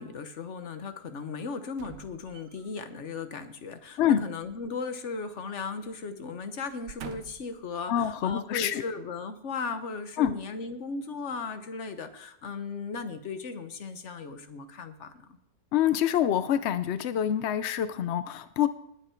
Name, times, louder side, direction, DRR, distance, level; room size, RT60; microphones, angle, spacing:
voice 1, 0.0-15.4, left 4 dB, 50° left, 9 dB, 1.2 m, -37 dB
sound 1, 1.7-2.9 4.4-5.6 5.9-6.1 6.6-7.6 8.3-8.4, right 7 dB, 85° right, 1.5 m, -47 dB
voice 2, 7.9-8.8 10.2-10.4 15.7-18.7, left 10 dB, 75° left, 12 dB, 0.6 m, -26 dB
19.5 x 8.1 x 4.5 m, 0.77 s
omnidirectional pair, 1.8 m